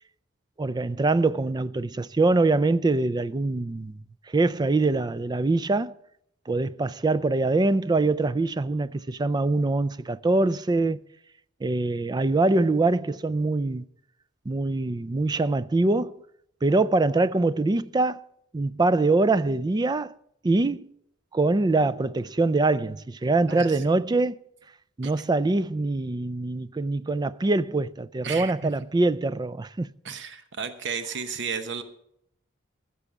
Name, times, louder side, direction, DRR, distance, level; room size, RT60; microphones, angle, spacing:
voice 1, 0.6-4.0 4.3-6.0 6.5-11.0 11.6-13.8 14.5-16.1 16.6-18.2 18.5-20.1 20.4-20.9 21.3-24.4 25.0-29.9, right 2 dB, 20° right, 0.4 m, -24 dB
voice 2, 23.5-23.8 25.0-25.1 28.2-28.7 30.0-31.8, right 5 dB, 65° right, 0.9 m, -33 dB
15.0 x 6.9 x 7.2 m
head